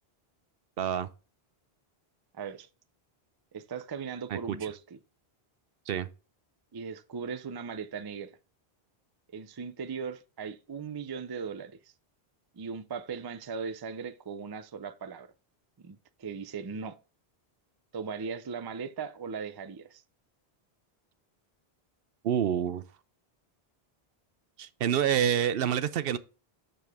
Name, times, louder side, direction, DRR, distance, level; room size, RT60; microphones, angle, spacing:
voice 1, 0.8-1.1 4.3-4.6 5.9-6.1 22.2-22.8 24.6-26.2, right 9 dB, 70° right, 0.7 m, -27 dB
voice 2, 2.3-2.7 3.5-4.8 6.7-8.3 9.3-11.8 12.5-15.3 15.8-17.0 17.9-20.0, right 5 dB, 35° right, 0.4 m, -38 dB
6.9 x 6.3 x 3.5 m
omnidirectional pair, 1.0 m